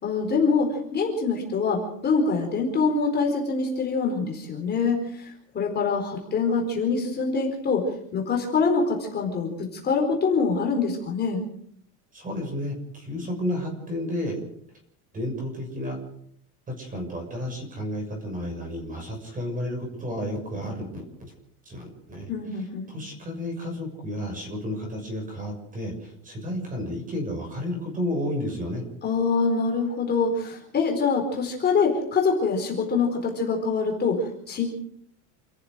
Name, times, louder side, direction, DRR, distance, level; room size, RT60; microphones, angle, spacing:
voice 1, 0.0-7.8 8.1-9.5 9.8-11.4 22.3-22.9 29.0-34.7, left 4 dB, 25° left, 1 dB, 4.4 m, -25 dB
voice 2, 12.1-14.4 15.1-16.0 16.8-21.3 21.6-22.3 22.9-28.8, left 1 dB, 20° right, 4 dB, 6.6 m, -32 dB
28.5 x 14.5 x 6.4 m, 0.67 s
cardioid pair, 170°, 43 cm